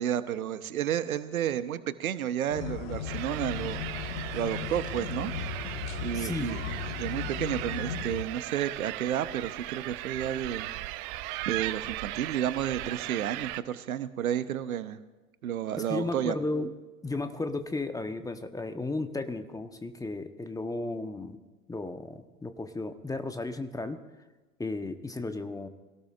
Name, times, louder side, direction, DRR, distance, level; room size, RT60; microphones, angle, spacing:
voice 1, 0.0-3.8 4.1-5.3 6.0-6.6 7.0-10.7 11.5-15.0 15.4-16.4, right 10 dB, 70° right, 13 dB, 1.0 m, -31 dB
sound 1, 2.5-8.2, left 6 dB, 60° left, 1.7 m, -36 dB
sound 2, 3.1-13.6, right 17 dB, 40° right, 0.7 m, -38 dB
voice 2, 6.1-6.6 15.8-16.7 17.0-21.4 21.7-24.0 24.6-25.7, left 2 dB, 10° left, 8 dB, 1.1 m, -34 dB
26.0 x 17.5 x 2.5 m, 1.2 s
figure-of-eight pair, 85°, 43 cm